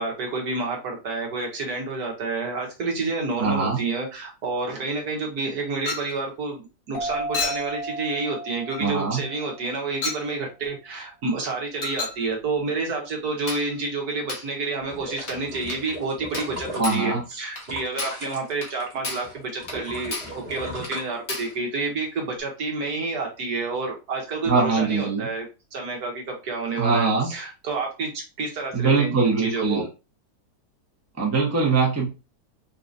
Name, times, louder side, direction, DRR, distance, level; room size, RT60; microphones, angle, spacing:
voice 1, 0.0-25.5 25.7-29.8, right 3 dB, 65° right, 0 dB, 1.5 m, -29 dB
voice 2, 3.4-3.8 8.8-9.2 16.8-17.2 24.5-25.3 26.8-27.3 28.7-29.8 31.2-32.0, right 4 dB, 10° right, -2 dB, 0.8 m, -22 dB
Chink clink, 5.9-6.2 7.3-7.7 8.7-8.9 10.0-10.3 11.8-12.2 13.5-13.7 14.3-14.5 15.3-15.4 15.7-15.9 16.3-16.6 16.8-17.1 17.6-17.7 18.0-18.3 18.6-18.7 19.0-19.3 19.7-19.8 20.1-20.4 20.8-21.0 21.3-21.6, left 4 dB, 55° left, 1.4 m, -32 dB
sound 1, 6.9-10.2, right 2 dB, 40° left, 0.9 m, -34 dB
sound 2, 14.8-18.9 19.2-21.8 22.2-22.3, right 1 dB, 40° right, 1.6 m, -37 dB
4.0 x 2.8 x 2.5 m, 0.29 s
omnidirectional pair, 1.8 m